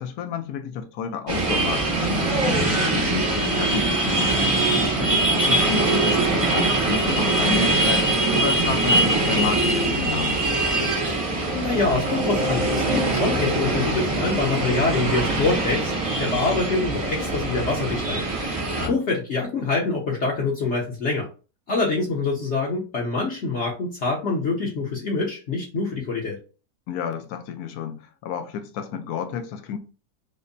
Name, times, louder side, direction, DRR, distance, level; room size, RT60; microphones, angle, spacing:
voice 1, 0.0-4.3 4.7-8.1 8.3-10.5 18.7-19.0 26.9-29.8, left 7 dB, 75° left, 1.1 m, -31 dB
sound 1, 1.3-18.9, right 2 dB, 35° right, 0.5 m, -22 dB
voice 2, 11.1-18.5 18.9-21.3 21.7-26.4, left 3 dB, 55° left, 0.9 m, -25 dB
5.1 x 2.1 x 2.6 m
omnidirectional pair, 1.7 m